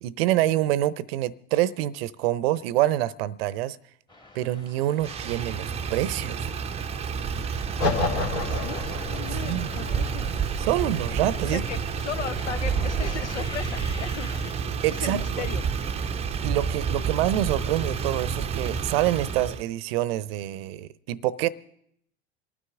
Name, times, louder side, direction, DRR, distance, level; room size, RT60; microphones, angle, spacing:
voice 1, 0.0-3.8 4.3-6.5 9.3-9.7 10.6-11.6 14.8-15.4 16.4-21.5, right 14 dB, 60° right, 19 dB, 0.7 m, -26 dB
sound 1, 4.1-14.4, left 2 dB, 15° left, 1.6 m, -47 dB
Motor vehicle (road), 5.0-19.6, right 6 dB, 20° right, 0.6 m, -30 dB
sound 2, 7.8-14.0, left 3 dB, 65° left, 2.1 m, -33 dB
voice 2, 8.3-10.3 11.4-16.2, left 7 dB, 80° left, 14 dB, 0.8 m, -37 dB
27.0 x 9.6 x 3.6 m, 0.72 s
hypercardioid pair, 85°, 34 cm